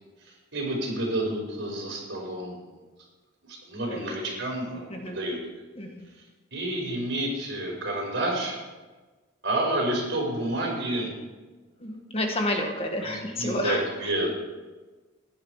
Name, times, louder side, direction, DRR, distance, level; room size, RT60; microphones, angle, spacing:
voice 1, 0.3-2.6 3.7-5.4 6.5-8.6 9.4-11.1 13.0-14.3, right 1 dB, 60° right, -2 dB, 5.1 m, -29 dB
voice 2, 11.8-14.1, left 1 dB, 30° left, 3 dB, 1.5 m, -30 dB
15.5 x 11.0 x 4.8 m, 1.3 s
head